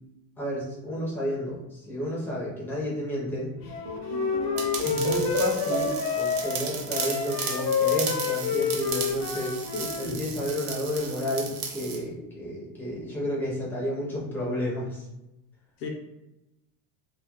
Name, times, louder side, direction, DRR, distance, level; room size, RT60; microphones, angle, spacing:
voice 1, 0.4-3.5 4.8-9.5 10.0-15.1, left 1 dB, 5° left, -6 dB, 0.4 m, -31 dB
sound 1, 3.6-8.2, left 2 dB, 50° right, 0.6 m, -34 dB
Wind instrument woodwind instrument, 3.7-10.1, left 5 dB, 55° left, 0.5 m, -29 dB
sound 2, 4.6-12.0, right 6 dB, 90° right, 0.7 m, -35 dB
voice 2, 9.7-10.2 15.8-15.9, left 3 dB, 90° left, 1 dB, 0.7 m, -34 dB
2.3 x 2.0 x 2.8 m, 0.95 s
cardioid pair, 165°, 48 cm